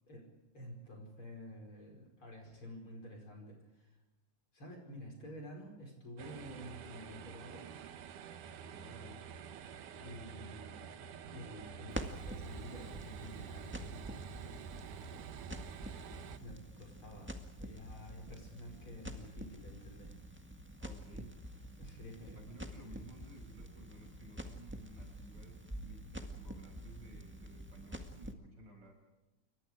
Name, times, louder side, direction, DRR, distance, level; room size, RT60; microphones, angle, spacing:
voice 1, 0.5-4.0 4.5-7.7 9.9-15.1 15.8-20.1 21.8-22.4, equal, 40° left, 2 dB, 5.7 m, -50 dB
sound 1, 6.2-16.4, right 7 dB, 85° right, 2.8 m, -48 dB
voice 2, 8.7-9.2 20.8-21.4 22.1-28.9, right 1 dB, 35° right, 2 dB, 7.8 m, -55 dB
Crackle, 11.9-28.3, equal, 5° right, 0.9 m, -47 dB
28.0 x 24.5 x 4.9 m, 1.0 s
omnidirectional pair, 3.5 m